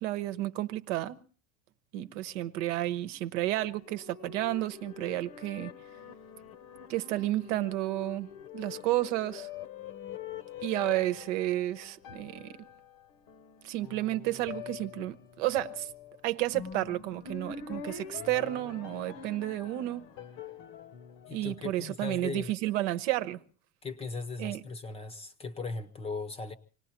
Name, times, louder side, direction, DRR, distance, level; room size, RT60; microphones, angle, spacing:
voice 1, 0.0-1.2 1.9-5.7 6.9-9.5 10.6-12.5 13.6-15.9 16.2-20.1 21.3-23.4 24.4-24.6, right 15 dB, 75° right, 1.1 m, -31 dB
sound 1, 3.6-22.2, left 8 dB, 45° left, 0.9 m, -45 dB
voice 2, 21.3-22.5 23.8-26.5, left 4 dB, 15° left, 0.8 m, -38 dB
26.0 x 19.0 x 2.9 m
cardioid pair, 160°, 37 cm